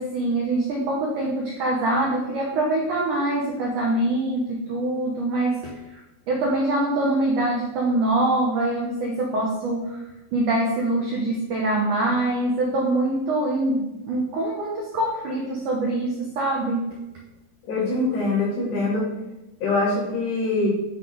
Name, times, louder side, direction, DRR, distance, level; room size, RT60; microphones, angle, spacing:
voice 1, 0.0-5.6 5.9-6.0 6.3-10.0 10.3-16.9, right 2 dB, 75° right, -2 dB, 1.9 m, -24 dB
voice 2, 17.7-19.1 19.6-20.7, left 2 dB, 65° left, -6 dB, 5.1 m, -23 dB
9.7 x 4.0 x 4.9 m, 0.98 s
omnidirectional pair, 5.0 m